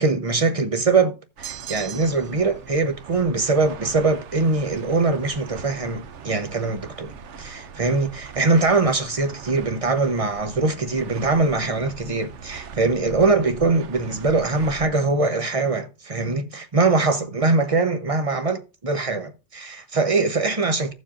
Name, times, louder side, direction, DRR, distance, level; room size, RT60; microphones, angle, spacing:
voice 1, 0.0-20.9, right 3 dB, 30° right, 0.9 m, -22 dB
sound 1, 1.4-2.4, right 9 dB, 60° right, 0.8 m, -37 dB
sound 2, 1.4-14.9, right 6 dB, 85° right, 1.1 m, -41 dB
14.5 x 7.3 x 2.5 m
omnidirectional pair, 1.2 m